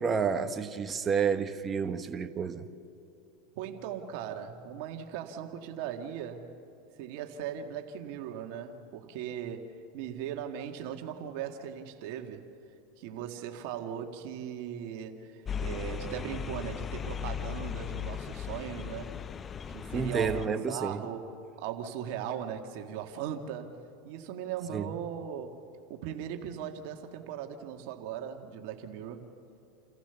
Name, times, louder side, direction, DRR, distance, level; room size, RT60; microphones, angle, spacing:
voice 1, 0.0-2.7 19.9-21.0 24.7-24.9, right 6 dB, 20° right, 1.2 m, -30 dB
voice 2, 3.6-6.4 7.0-12.4 13.0-19.2 19.7-23.8 24.0-25.6 25.9-29.3, right 9 dB, 65° right, 1.9 m, -38 dB
sound 1, 15.4-20.5, left 8 dB, 25° left, 0.4 m, -37 dB
28.5 x 14.5 x 7.0 m
supercardioid pair, 120°, 0 cm